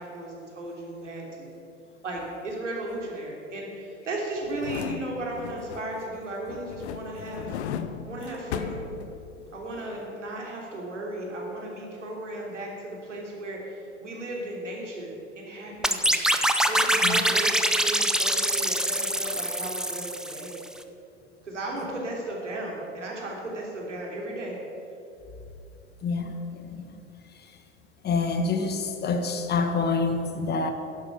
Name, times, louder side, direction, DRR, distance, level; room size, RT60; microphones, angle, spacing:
voice 1, 0.0-1.5 2.0-7.6 8.0-8.9 9.5-16.2 16.7-20.5 21.4-24.6, right 1 dB, 85° right, -2 dB, 3.3 m, -35 dB
sound 1, 4.4-6.1 6.5-9.6 9.9-10.0, left 8 dB, 65° left, 0.9 m, -36 dB
sound 2, 15.8-20.6, right 1 dB, ahead, 0.7 m, -24 dB
voice 2, 26.0-26.9 28.0-30.7, left 4 dB, 30° left, 6 dB, 1.4 m, -27 dB
11.5 x 11.0 x 7.1 m, 2.8 s
figure-of-eight pair, 85°, 36 cm